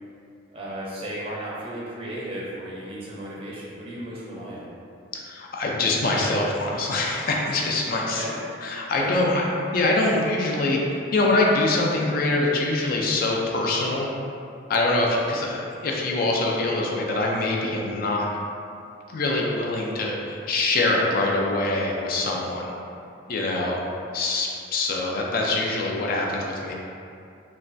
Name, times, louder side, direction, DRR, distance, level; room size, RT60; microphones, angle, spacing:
voice 1, 0.5-4.7 8.0-8.4 8.9-9.2, right 1 dB, 30° right, -6 dB, 0.5 m, -35 dB
voice 2, 5.1-8.2 8.6-9.5 9.7-14.1 14.7-18.3 19.1-22.7 23.3-23.8 24.1-26.7, left 2 dB, 50° left, -1 dB, 0.3 m, -24 dB
3.1 x 2.2 x 2.5 m, 2.6 s
head